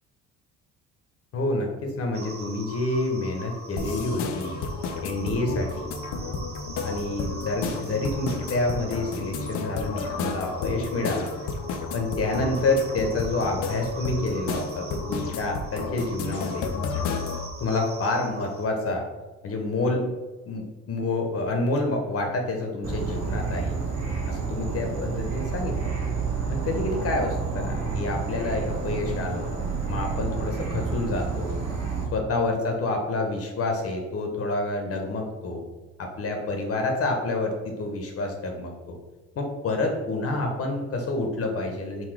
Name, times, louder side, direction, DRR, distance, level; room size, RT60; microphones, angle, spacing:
voice 1, 1.3-4.6 5.0-5.9 6.8-11.3 11.9-16.7 17.6-19.0 19.4-20.1 20.5-23.8 24.3-25.8 26.5-29.5 29.9-31.6 32.1-35.6 36.0-39.0 39.4-42.1, left 2 dB, 50° left, 3 dB, 0.8 m, -28 dB
sound 1, 2.1-18.6, right 2 dB, 35° right, 0.7 m, -43 dB
sound 2, 3.8-17.5, left 4 dB, 80° left, 0.5 m, -32 dB
Insect / Frog, 22.8-32.0, right 4 dB, 60° right, 1.3 m, -29 dB
3.9 x 2.2 x 4.4 m, 1.2 s
cardioid pair, 100°, 30 cm